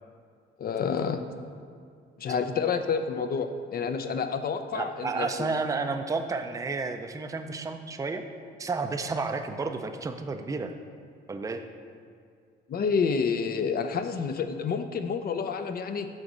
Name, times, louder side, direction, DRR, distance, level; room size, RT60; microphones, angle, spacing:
voice 1, 0.6-1.2 2.2-5.5 12.7-16.1, left 6 dB, 50° left, 8 dB, 0.6 m, -29 dB
voice 2, 4.7-8.2 8.6-10.7 11.3-11.6, right 4 dB, 15° right, 6 dB, 0.4 m, -31 dB
6.4 x 4.2 x 6.1 m, 2.2 s
cardioid pair, 90°, 20 cm